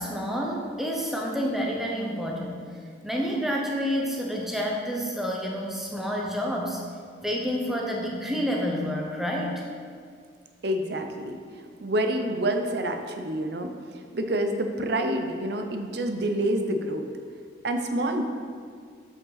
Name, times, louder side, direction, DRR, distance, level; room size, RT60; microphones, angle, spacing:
voice 1, 0.0-2.6 3.0-6.8 7.2-9.6, equal, ahead, -1 dB, 0.7 m, -29 dB
voice 2, 10.6-17.1 17.6-18.2, right 1 dB, 55° right, 5 dB, 0.6 m, -28 dB
7.4 x 5.3 x 4.0 m, 2.1 s
head